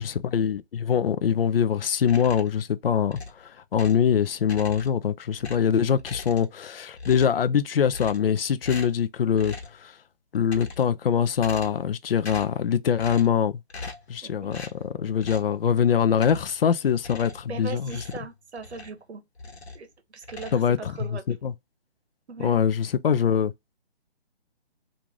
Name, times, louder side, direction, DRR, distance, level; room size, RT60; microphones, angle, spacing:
voice 1, 0.0-9.6 9.8-9.9 10.3-13.6 14.1-18.0 20.5-20.9 21.3-21.5 22.4-23.5, left 8 dB, 60° left, 0.5 m, -23 dB
sound 1, 2.0-2.6 3.1-4.1 4.4-5.1 5.4-6.7 6.9-7.5 7.9-8.4 8.6-9.0 9.4-9.8 10.3-11.0 11.4-11.9 12.2-12.6 13.0-13.4 13.7-14.1 14.5-14.8 15.2-15.5 16.1-16.6 17.0-19.0 19.4-19.9 20.2-21.1, left 3 dB, 85° left, 1.2 m, -40 dB
voice 2, 14.2-14.6 17.5-19.2 19.7-21.2 22.3-22.5, right 5 dB, 80° right, 0.9 m, -39 dB
3.2 x 2.5 x 3.6 m
hypercardioid pair, 160°, 32 cm